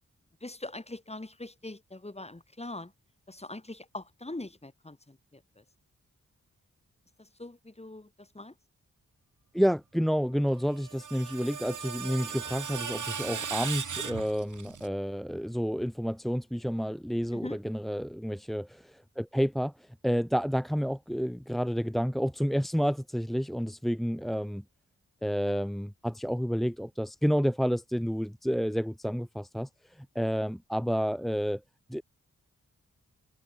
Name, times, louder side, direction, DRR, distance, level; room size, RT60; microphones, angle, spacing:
voice 1, 0.4-2.9 3.3-5.6 7.2-8.5 17.3-17.6, left 2 dB, 20° left, 4.3 m, -42 dB
voice 2, 9.5-24.6 25.2-29.7 30.0-31.6 31.9-32.0, equal, ahead, 1.7 m, -30 dB
Screech, 10.6-14.9, right 6 dB, 80° right, 7.1 m, -37 dB
cardioid pair, 70°, 30 cm